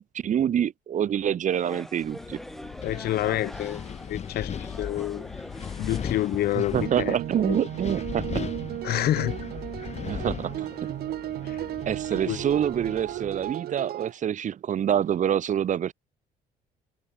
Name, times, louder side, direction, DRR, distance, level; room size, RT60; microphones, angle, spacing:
voice 1, 0.0-2.4 6.5-8.4 10.0-11.0 11.9-15.9, right 9 dB, 50° right, 1.6 m, -26 dB
sound 1, 1.5-6.9, equal, ahead, 1.3 m, -42 dB
Wind, 2.0-13.5, left 7 dB, 40° left, 3.7 m, -38 dB
voice 2, 2.8-5.3 5.8-7.6 8.8-9.3 11.4-11.6 12.2-12.4, left 14 dB, 70° left, 1.3 m, -28 dB
sound 2, 6.7-14.1, right 13 dB, 65° right, 2.5 m, -34 dB
cardioid pair, 110°, 17 cm